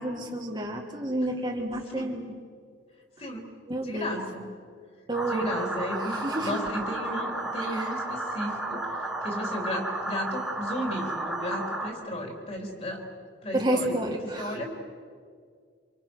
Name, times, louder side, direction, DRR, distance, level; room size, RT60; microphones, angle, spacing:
voice 1, 0.0-2.3 3.7-4.2 5.1-5.5 6.0-6.5 7.6-7.9 13.5-14.6, right 1 dB, 25° right, 1 dB, 1.9 m, -30 dB
voice 2, 3.8-4.5 5.3-13.0 13.4-14.0 14.3-14.7, equal, 35° left, 2 dB, 3.9 m, -34 dB
sound 1, 5.1-11.9, right 2 dB, ahead, 2.6 m, -33 dB
27.5 x 27.0 x 6.4 m, 2.1 s
head